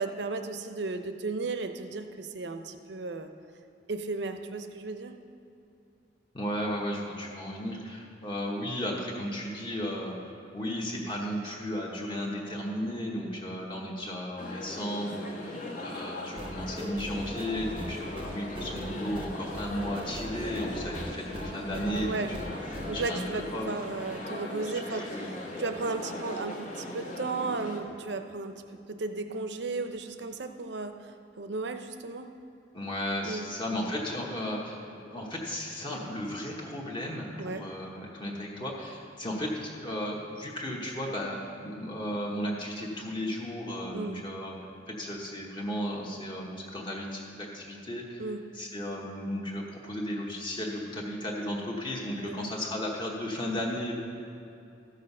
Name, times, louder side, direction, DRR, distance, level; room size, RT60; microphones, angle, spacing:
voice 1, 0.0-3.3 3.9-5.2 22.0-22.3 22.9-25.1 25.6-28.6 28.9-32.3 33.2-33.5 37.4-37.7 43.9-44.2 48.2-48.4 52.2-52.5, right 3 dB, 70° right, 7 dB, 0.7 m, -35 dB
voice 2, 6.3-23.7 24.9-25.3 32.7-44.5 44.9-48.2 48.5-53.9, equal, 25° left, -2 dB, 1.1 m, -35 dB
sound 1, 14.4-27.8, left 1 dB, 45° left, 1.6 m, -39 dB
sound 2, 16.4-23.1, right 1 dB, 30° right, 0.6 m, -41 dB
14.0 x 6.5 x 5.5 m, 2.7 s
head